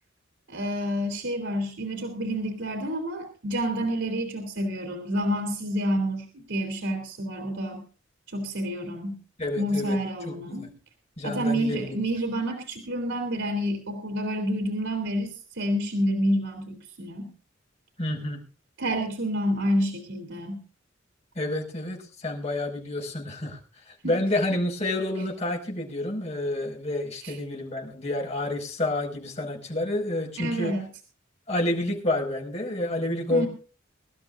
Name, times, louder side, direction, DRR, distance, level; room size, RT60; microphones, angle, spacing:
voice 1, 0.5-7.8 8.3-9.2 9.6-10.7 11.2-17.3 18.8-20.6 24.0-24.1 30.4-30.9 33.3-33.5, equal, 80° right, 4 dB, 2.9 m, -28 dB
voice 2, 9.4-10.0 10.3-10.7 11.2-11.8 18.0-18.5 21.4-23.6 23.9-30.7 31.5-33.5, left 1 dB, 35° left, 0 dB, 5.3 m, -29 dB
24.0 x 12.5 x 2.5 m, 0.37 s
head